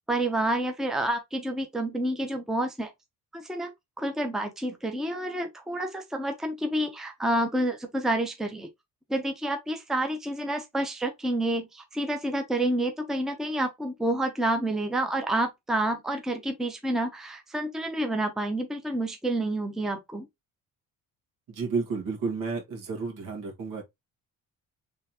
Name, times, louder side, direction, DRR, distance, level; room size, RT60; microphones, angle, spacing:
voice 1, 0.1-2.9 3.3-3.7 4.0-8.7 9.1-20.2, right 1 dB, ahead, 0.7 m, -29 dB
voice 2, 21.5-23.8, right 4 dB, 70° right, 2.0 m, -31 dB
3.7 x 3.4 x 2.9 m
cardioid pair, 120°, 34 cm